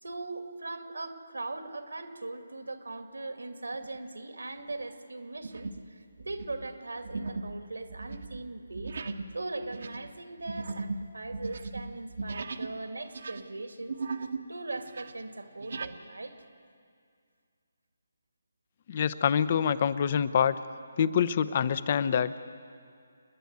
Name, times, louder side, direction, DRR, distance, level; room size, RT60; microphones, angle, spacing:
voice 1, 0.0-8.9 9.3-14.0 14.5-16.4, right 2 dB, 80° right, 6 dB, 2.3 m, -40 dB
sound 1, 3.7-4.1 4.6-4.8 5.4-5.9 6.2-12.8 13.0-14.5 14.8-16.0, right 3 dB, 60° right, 1.2 m, -38 dB
voice 2, 18.9-20.5 21.0-22.5, left 8 dB, 40° left, 15 dB, 0.7 m, -26 dB
29.0 x 10.5 x 9.6 m, 2.3 s
figure-of-eight pair, 150°, 0 cm